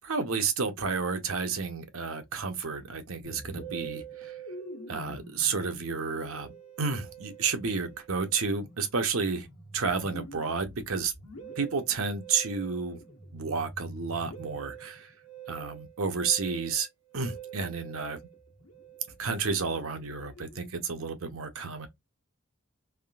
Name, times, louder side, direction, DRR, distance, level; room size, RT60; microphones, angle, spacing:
voice 1, 0.0-4.3 4.9-9.5 9.7-11.1 11.6-13.0 13.3-15.1 15.5-16.9 17.1-18.2 19.2-21.9, right 5 dB, 70° right, 0.8 m, -31 dB
Musical instrument, 3.2-20.8, right 4 dB, 90° left, 1.1 m, -46 dB
3.5 x 2.5 x 2.3 m
head